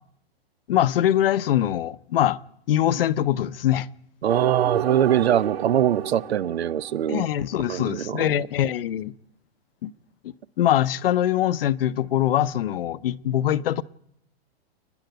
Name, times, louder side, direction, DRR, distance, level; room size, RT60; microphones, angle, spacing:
voice 1, 0.7-2.4 2.7-3.9 7.1-9.1 9.8-9.9 10.2-13.8, left 11 dB, 65° left, 0.8 m, -23 dB
voice 2, 4.2-7.2 7.7-8.3, right 10 dB, 85° right, 0.9 m, -22 dB
sound 1, 4.3-7.6, right 9 dB, 70° right, 2.9 m, -31 dB
29.5 x 10.5 x 9.3 m
hypercardioid pair, 160°, 31 cm